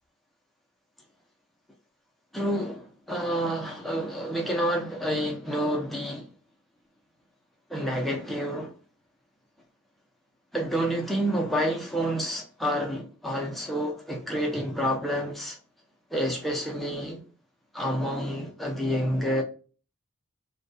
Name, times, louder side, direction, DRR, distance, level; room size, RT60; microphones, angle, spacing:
voice 1, 2.3-6.3 7.7-8.7 10.5-15.6 16.1-17.2 17.7-19.4, equal, ahead, 0.5 m, -29 dB
2.2 x 2.2 x 2.5 m
head